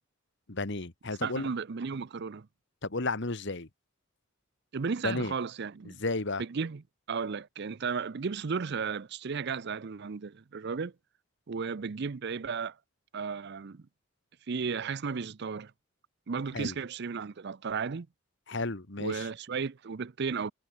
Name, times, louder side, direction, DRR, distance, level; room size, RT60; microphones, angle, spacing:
voice 1, 0.5-1.5 2.8-3.7 5.0-5.3 6.0-6.4 16.5-16.7 18.5-19.3, left 3 dB, 55° left, 1.6 m, -32 dB
voice 2, 1.2-2.5 4.7-6.0 6.4-6.8 7.1-10.9 11.5-12.7 13.1-13.8 14.5-15.7 16.3-18.1 19.0-20.5, right 5 dB, 50° right, 0.5 m, -34 dB
head